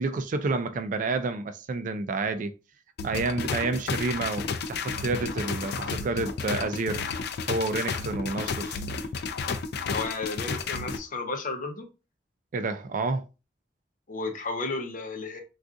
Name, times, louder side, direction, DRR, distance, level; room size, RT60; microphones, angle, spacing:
voice 1, 0.0-2.5 3.0-7.0 7.5-8.8 12.5-13.3, right 3 dB, 45° right, 0.3 m, -29 dB
sound 1, 3.0-11.0, left 5 dB, 65° left, 0.4 m, -32 dB
voice 2, 9.9-11.9 14.1-15.4, left 3 dB, 50° left, 0.7 m, -33 dB
3.6 x 2.4 x 2.5 m
head